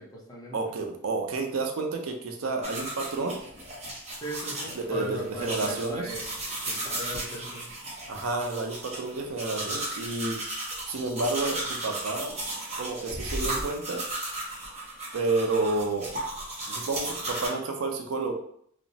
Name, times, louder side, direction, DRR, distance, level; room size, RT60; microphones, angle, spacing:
voice 1, 0.0-0.7 4.2-6.2 6.6-7.7 13.4-13.6, equal, 20° left, -4 dB, 0.6 m, -38 dB
voice 2, 0.5-3.4 4.8-6.2 8.1-10.4 10.9-12.4 12.8-14.0 15.1-16.1 16.7-18.3, right 3 dB, 70° right, 3 dB, 0.5 m, -30 dB
sound 1, 2.6-17.5, right 1 dB, 30° right, 0.8 m, -35 dB
2.9 x 2.0 x 2.7 m, 0.66 s
head